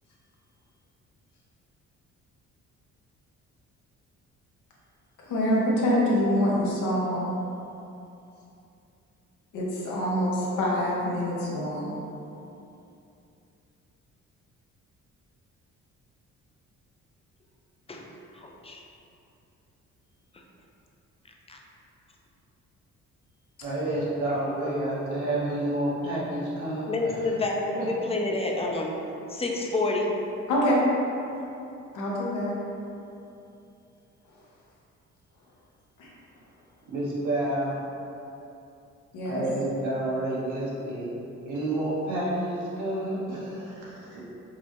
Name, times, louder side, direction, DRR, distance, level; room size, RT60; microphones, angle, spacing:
voice 1, 5.2-7.3 9.5-11.9 30.5-30.8 31.9-32.5 36.0-36.1 39.1-39.4, equal, 85° left, -5 dB, 0.9 m, -25 dB
voice 2, 18.3-18.8 21.5-21.6 26.9-28.9 29.3-30.1, left 2 dB, 20° left, 0 dB, 0.4 m, -28 dB
voice 3, 23.6-26.9 27.2-27.3 27.7-27.9 36.9-37.8 39.2-41.1 41.4-44.2, right 1 dB, 80° right, -7 dB, 1.1 m, -29 dB
5.1 x 2.1 x 2.9 m, 2.8 s
cardioid pair, 90°, 30 cm